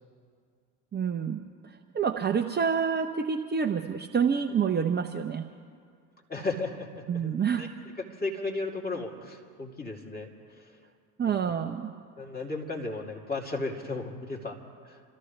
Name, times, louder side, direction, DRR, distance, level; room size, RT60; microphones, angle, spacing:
voice 1, 0.9-1.5 1.9-5.5 7.1-7.6 11.2-11.9, right 7 dB, 20° right, 3 dB, 0.9 m, -27 dB
voice 2, 6.3-7.3 7.6-7.7 8.2-10.3 10.6-10.7 12.2-14.6 14.8-15.0, left 3 dB, 20° left, 0 dB, 3.0 m, -34 dB
29.0 x 14.0 x 3.3 m, 2.2 s
hypercardioid pair, 80°, 48 cm